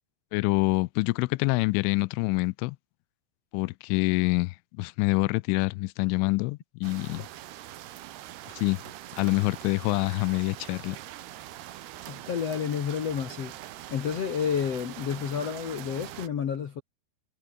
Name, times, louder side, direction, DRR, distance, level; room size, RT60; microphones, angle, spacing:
voice 1, 0.3-2.8 3.5-7.3 8.6-8.8 9.2-11.0, left 25 dB, 85° left, 3.0 m, -26 dB
sound 1, 6.8-16.3, right 13 dB, 65° right, 3.0 m, -43 dB
voice 2, 12.0-13.5 13.9-16.8, left 7 dB, 70° left, 1.5 m, -30 dB
omnidirectional pair, 5.5 m